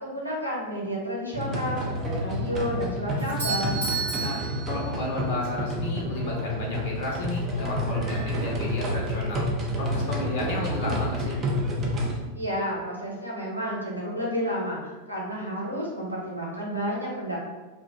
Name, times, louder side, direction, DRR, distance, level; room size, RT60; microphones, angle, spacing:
voice 1, 0.0-3.8 12.3-17.4, equal, 90° left, -4 dB, 0.7 m, -31 dB
sound 1, 1.3-12.2, equal, 25° right, 0.5 m, -29 dB
Doorbell, 3.2-5.3, right 5 dB, 85° right, 1.2 m, -32 dB
voice 2, 4.2-9.4 9.8-11.3, left 1 dB, 50° left, -2 dB, 0.5 m, -32 dB
2.7 x 2.1 x 2.8 m, 1.2 s
figure-of-eight pair, 90°, 0 cm